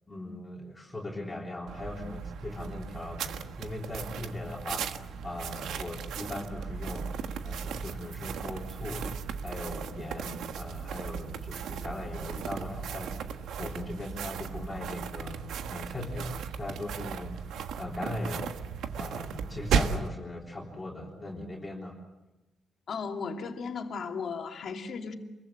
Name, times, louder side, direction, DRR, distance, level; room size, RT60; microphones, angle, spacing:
voice 1, 0.1-7.1 7.4-9.2 9.4-13.2 13.6-15.4 15.7-18.7 19.0-22.0, left 1 dB, 15° left, -3 dB, 3.6 m, -39 dB
sound 1, 1.7-20.1, right 7 dB, 85° right, 1.4 m, -36 dB
voice 2, 22.9-25.1, left 5 dB, 50° left, 3 dB, 2.6 m, -35 dB
27.5 x 22.5 x 8.4 m, 1.0 s
cardioid pair, 170°, 0 cm